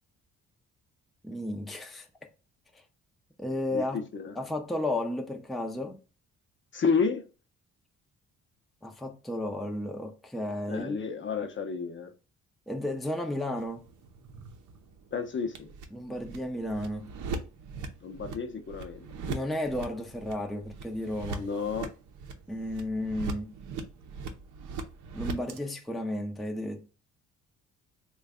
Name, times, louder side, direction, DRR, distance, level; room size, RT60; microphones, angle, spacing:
voice 1, 1.2-2.1 3.4-4.1 4.3-6.0 8.8-10.9 12.7-13.9 15.9-17.1 19.3-21.5 22.5-23.5 25.1-26.9, left 1 dB, ahead, 0.5 m, -33 dB
voice 2, 3.7-4.3 6.7-7.2 10.7-12.1 15.1-15.7 18.0-19.0 21.4-21.9, left 5 dB, 40° left, 0.6 m, -31 dB
sound 1, 13.6-25.6, right 3 dB, 80° right, 0.6 m, -41 dB
3.2 x 2.3 x 3.5 m
cardioid pair, 90°, 30 cm